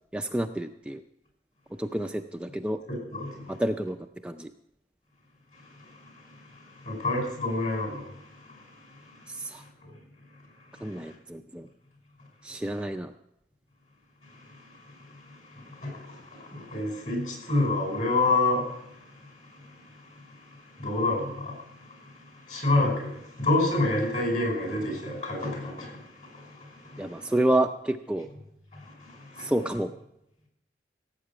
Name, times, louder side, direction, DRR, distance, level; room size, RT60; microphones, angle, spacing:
voice 1, 0.1-1.0 1.7-2.8 3.5-4.0 4.2-4.5 9.3-9.6 10.8-11.7 12.4-13.1 27.0-28.3 29.4-29.9, right 1 dB, 5° right, 5 dB, 0.4 m, -29 dB
voice 2, 2.9-3.6 5.5-10.0 10.7-11.1 14.2-27.3 28.7-29.5, left 2 dB, 45° left, 1 dB, 5.5 m, -30 dB
16.5 x 8.3 x 6.0 m, 0.81 s
head